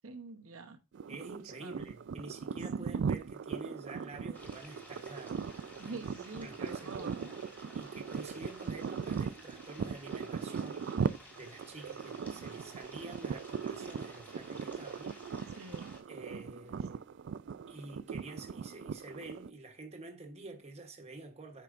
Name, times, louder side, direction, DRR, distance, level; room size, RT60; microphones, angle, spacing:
voice 1, 0.0-0.8 1.4-1.7 2.7-3.0 5.8-7.3 15.6-15.9, right 3 dB, 90° right, 0.9 m, -46 dB
sound 1, 0.9-19.5, right 6 dB, 55° right, 0.3 m, -39 dB
voice 2, 1.1-5.4 5.9-6.0 6.3-7.4 7.7-10.9 11.4-15.6 16.1-17.1 17.7-21.6, right 2 dB, 30° right, 1.0 m, -48 dB
sound 2, 4.3-16.0, left 1 dB, 10° left, 1.8 m, -54 dB
8.3 x 5.6 x 2.5 m
head